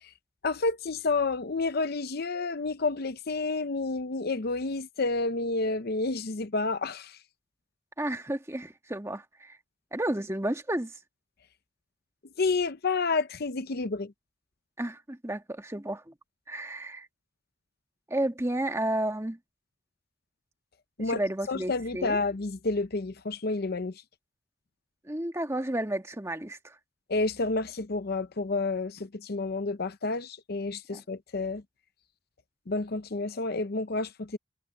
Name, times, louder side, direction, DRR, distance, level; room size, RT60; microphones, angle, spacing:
voice 1, 0.4-7.2 12.4-14.1 21.0-21.2 21.5-23.9 27.1-31.6 32.7-34.4, left 3 dB, 50° left, 0.7 m, -30 dB
voice 2, 8.0-9.6 9.9-10.9 14.8-16.1 16.5-17.1 18.1-19.4 21.0-22.2 25.0-26.7 30.9-31.0, right 1 dB, 15° right, 1.5 m, -32 dB
head